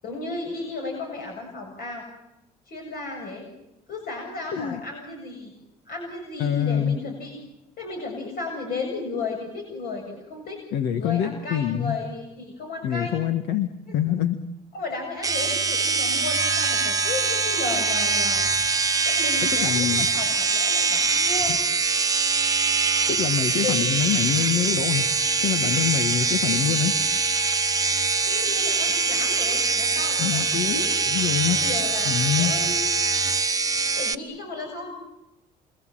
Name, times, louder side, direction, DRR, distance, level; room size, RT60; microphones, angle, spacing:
voice 1, 0.0-2.0 2.7-3.5 3.9-5.5 5.9-7.4 7.8-10.6 10.9-13.1 13.9-14.0 14.7-18.4 19.0-21.5 23.6-23.8 28.3-30.9 31.5-32.8 33.9-34.9, left 3 dB, 60° left, 1 dB, 7.6 m, -34 dB
voice 2, 6.4-7.0 10.7-12.0 12.8-14.4 19.5-20.1 23.1-25.1 25.4-26.9 30.2-31.6 32.0-32.5, left 10 dB, 80° left, 8 dB, 1.7 m, -25 dB
sound 1, 15.2-34.2, right 4 dB, 20° right, 1.0 m, -23 dB
29.0 x 26.0 x 7.8 m, 0.94 s
cardioid pair, 110°, 17 cm